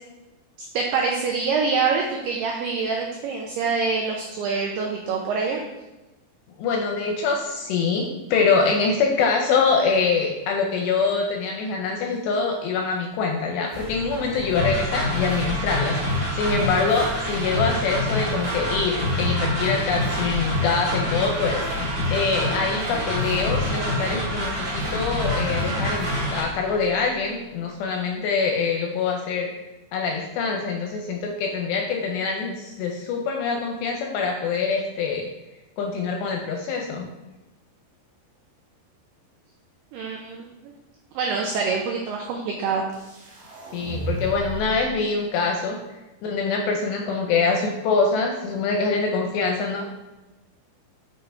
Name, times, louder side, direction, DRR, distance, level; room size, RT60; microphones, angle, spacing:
voice 1, 0.7-5.6 39.9-40.5 41.2-42.8, right 5 dB, 85° right, 0 dB, 2.3 m, -25 dB
voice 2, 6.6-29.5 29.9-35.2 35.8-37.1 43.7-45.8 46.2-49.8, left 4 dB, 80° left, 2 dB, 2.5 m, -24 dB
sound 1, 13.7-27.3, left 1 dB, 70° right, 3.0 m, -33 dB
sound 2, 14.5-26.4, left 1 dB, 25° right, 1.6 m, -27 dB
sound 3, 42.9-44.9, right 2 dB, 45° right, 3.1 m, -33 dB
7.7 x 5.8 x 3.4 m, 1.1 s
omnidirectional pair, 5.5 m